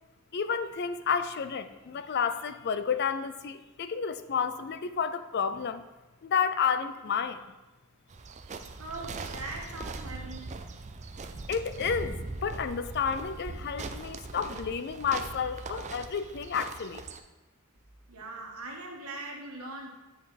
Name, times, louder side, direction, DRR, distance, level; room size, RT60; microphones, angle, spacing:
voice 1, 0.3-5.8 6.2-7.4 11.5-17.0, left 6 dB, 50° left, 11 dB, 0.4 m, -31 dB
sound 1, 8.1-17.2, right 3 dB, 30° right, 0.4 m, -40 dB
voice 2, 8.8-10.6 18.1-19.9, right 2 dB, 85° right, 1 dB, 1.5 m, -41 dB
8.7 x 5.4 x 4.1 m, 1.1 s
head